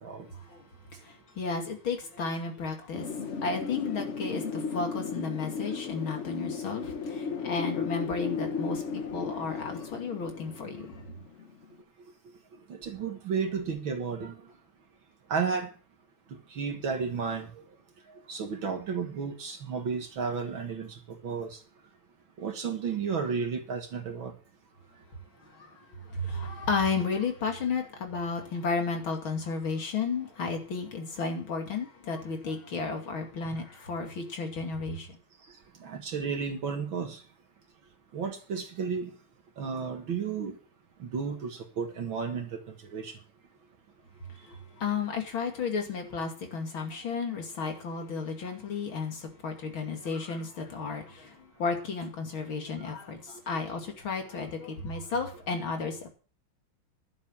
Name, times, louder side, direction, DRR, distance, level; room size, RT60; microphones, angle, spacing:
voice 1, 0.2-11.0 25.4-35.2 44.3-56.1, left 4 dB, 70° left, 3.3 m, -33 dB
Wind, 2.9-11.6, left 5 dB, 45° left, 1.0 m, -35 dB
voice 2, 12.5-14.5 15.3-15.7 16.3-17.6 18.3-21.6 22.4-24.3 35.8-37.2 38.1-39.1 39.6-40.6 41.0-43.2, right 5 dB, 70° right, 2.5 m, -33 dB
11.5 x 7.4 x 7.3 m
omnidirectional pair, 2.3 m